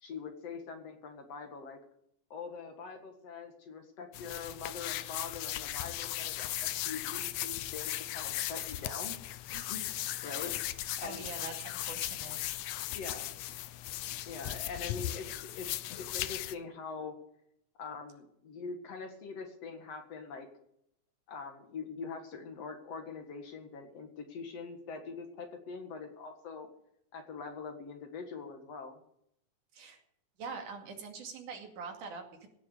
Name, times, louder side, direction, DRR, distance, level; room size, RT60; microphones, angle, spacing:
voice 1, 0.0-1.8 2.3-9.2 9.5-10.6 11.0-11.3 12.9-13.4 14.3-15.7 16.0-17.2 17.8-20.5 21.3-26.7 27.1-29.0, left 5 dB, 55° left, 5 dB, 2.7 m, -43 dB
sound 1, 4.1-16.6, left 14 dB, 75° left, 1.9 m, -37 dB
voice 2, 11.0-12.4 29.7-30.0 30.4-32.5, right 4 dB, 75° right, 3 dB, 3.8 m, -44 dB
17.0 x 7.2 x 8.4 m, 0.73 s
omnidirectional pair, 3.6 m